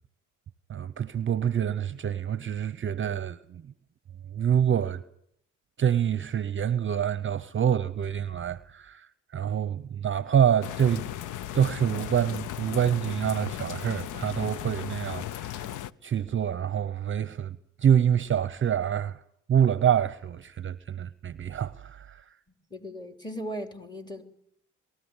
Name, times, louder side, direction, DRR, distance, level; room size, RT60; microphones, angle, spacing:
voice 1, 0.7-3.6 4.3-5.0 5.8-9.1 9.3-11.1 11.5-15.7 16.0-17.6 17.8-19.2 19.5-22.2, right 9 dB, 40° right, 0.7 m, -26 dB
sound 1, 10.6-15.9, left 12 dB, 80° left, 0.7 m, -36 dB
voice 2, 22.7-24.2, equal, 15° left, 3.2 m, -37 dB
22.5 x 14.0 x 9.6 m
cardioid pair, 90°, 30 cm